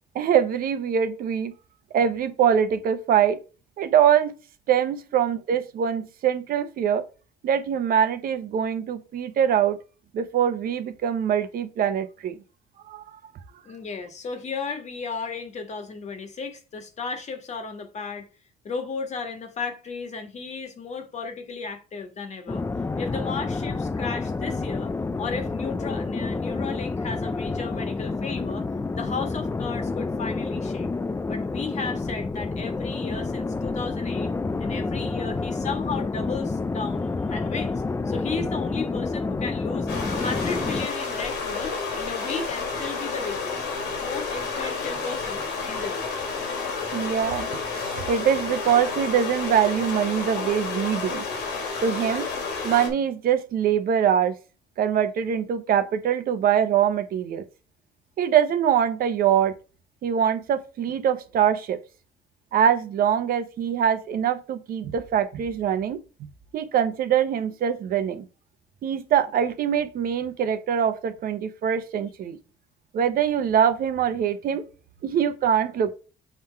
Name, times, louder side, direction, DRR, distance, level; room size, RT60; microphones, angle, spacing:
voice 1, 0.1-1.5 1.9-3.4 3.8-4.3 4.7-7.0 7.4-9.8 10.1-12.4 12.9-13.2 46.9-47.5 47.7-51.2 51.8-52.3 52.6-54.3 54.8-57.4 58.2-59.5 60.0-61.8 62.5-66.0 66.5-68.2 68.8-72.4 72.9-74.6 75.0-75.9, right 8 dB, 60° right, 1.0 m, -23 dB
voice 2, 13.6-18.3 18.6-22.6 23.0-28.7 28.9-30.9 31.3-34.3 34.6-39.9 40.2-46.1, left 5 dB, 45° left, 1.6 m, -34 dB
sound 1, 22.5-40.9, left 3 dB, 15° left, 0.4 m, -29 dB
sound 2, 39.9-52.9, left 4 dB, 90° left, 2.9 m, -30 dB
7.1 x 3.8 x 4.5 m
cardioid pair, 110°, 17 cm